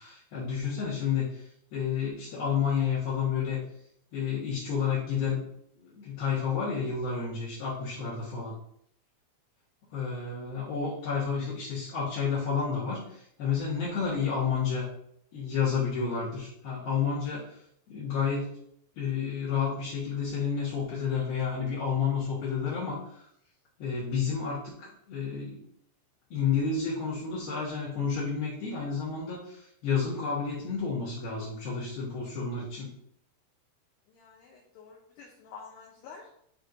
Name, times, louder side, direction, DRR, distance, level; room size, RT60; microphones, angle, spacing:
voice 1, 0.0-3.6 4.1-5.4 5.8-8.5 9.9-14.9 15.3-17.6 17.9-18.5 19.0-23.3 23.8-25.6 26.3-32.9, left 6 dB, 65° left, -5 dB, 2.7 m, -30 dB
voice 2, 34.1-36.3, left 5 dB, 90° left, -1 dB, 2.3 m, -49 dB
10.5 x 4.3 x 2.6 m, 0.69 s
omnidirectional pair, 5.8 m